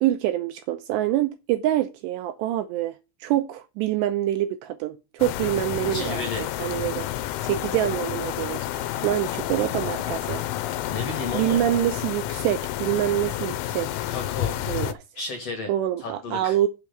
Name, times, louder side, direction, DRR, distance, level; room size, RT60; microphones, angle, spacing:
voice 1, 0.0-2.9 3.2-6.2 6.6-7.1 7.4-10.4 11.3-13.9 14.7-14.9 15.7-16.7, right 13 dB, 85° right, 2.5 m, -25 dB
sound 1, 5.2-14.9, left 13 dB, 90° left, 3.2 m, -30 dB
voice 2, 5.9-6.5 10.9-11.6 14.1-14.6 15.2-15.7 16.0-16.6, left 3 dB, 55° left, 1.8 m, -33 dB
8.2 x 4.7 x 6.7 m
omnidirectional pair, 5.6 m